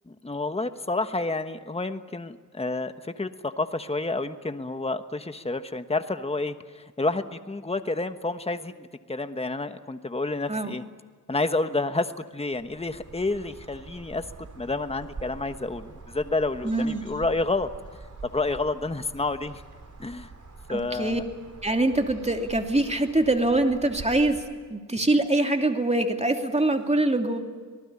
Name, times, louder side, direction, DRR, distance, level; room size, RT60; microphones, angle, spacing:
voice 1, 0.1-10.8 11.3-14.2 14.6-17.7 18.2-19.6 20.0-20.3 20.7-21.2, left 2 dB, 20° left, 9 dB, 1.2 m, -29 dB
sound 1, 12.5-24.3, right 3 dB, 65° right, 4.9 m, -45 dB
voice 2, 16.6-17.1 20.7-21.2 21.6-24.4 24.7-27.4, right 2 dB, 20° right, 4 dB, 2.9 m, -24 dB
26.5 x 19.5 x 9.8 m, 1.5 s
cardioid pair, 60°, 32 cm